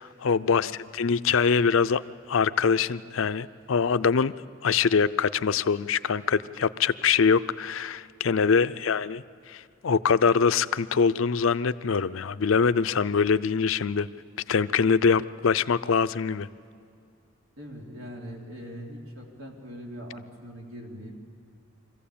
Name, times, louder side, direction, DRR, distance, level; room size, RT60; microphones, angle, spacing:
voice 1, 0.0-2.0 2.3-4.3 4.6-14.1 14.5-16.5, left 5 dB, 75° left, 14 dB, 0.5 m, -24 dB
voice 2, 17.6-21.2, equal, 90° right, -1 dB, 3.4 m, -41 dB
24.5 x 15.0 x 8.6 m, 2.3 s
head